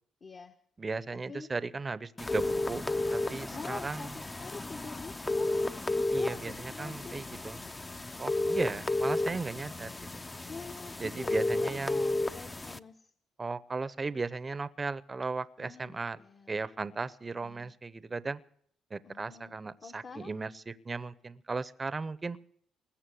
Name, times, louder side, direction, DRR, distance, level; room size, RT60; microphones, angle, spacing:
voice 1, 0.2-0.5 1.1-1.5 3.2-5.6 6.2-7.2 7.9-8.9 10.5-13.1 15.6-16.6 17.4-17.7 19.0-19.5 19.8-20.3, left 4 dB, 40° left, 6 dB, 1.0 m, -46 dB
voice 2, 0.8-2.8 3.1-4.1 6.1-7.6 8.2-9.9 11.0-12.2 13.4-16.2 16.5-18.4 18.9-22.4, right 3 dB, 30° right, 16 dB, 0.7 m, -36 dB
sound 1, 2.2-12.8, left 2 dB, 20° left, 0.6 m, -33 dB
20.0 x 7.3 x 8.4 m, 0.64 s
cardioid pair, 90°, 0 cm